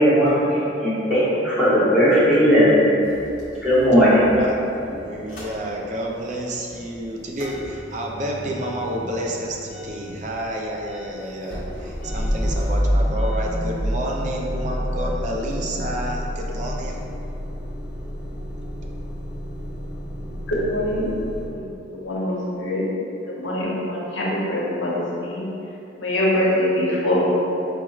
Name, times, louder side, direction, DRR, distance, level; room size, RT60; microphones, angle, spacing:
voice 1, 0.0-3.0 3.6-4.3, equal, 5° right, -12 dB, 0.9 m, -17 dB
Motor vehicle (road) / Engine starting / Idling, 3.0-6.2 6.5-21.5, equal, 45° left, 0.9 m, -29 dB
voice 2, 4.4-17.1 18.3-18.9 20.1-20.4, right 1 dB, 40° right, -1 dB, 0.4 m, -30 dB
voice 3, 20.7-21.1 21.5-22.9 23.3-25.4 26.0-27.2, left 1 dB, 80° left, -5 dB, 0.8 m, -24 dB
4.4 x 2.9 x 2.4 m, 2.8 s
head